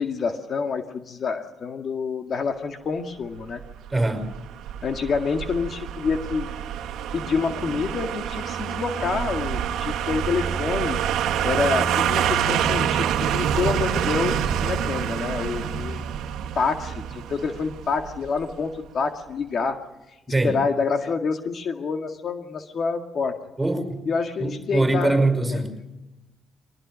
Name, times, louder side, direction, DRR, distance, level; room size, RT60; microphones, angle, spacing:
voice 1, 0.0-3.6 4.8-6.5 7.1-11.0 11.4-16.0 16.5-19.8 20.4-23.4 24.1-25.2 25.5-25.6, left 5 dB, 55° left, 5 dB, 2.0 m, -27 dB
sound 1, 3.6-18.5 18.8-18.9, right 9 dB, 85° right, 1.5 m, -27 dB
voice 2, 3.9-4.3 20.3-20.6 23.6-24.0 24.4-25.7, right 2 dB, 10° right, 8 dB, 5.5 m, -22 dB
24.0 x 19.5 x 6.4 m, 0.99 s
cardioid pair, 90°, 0 cm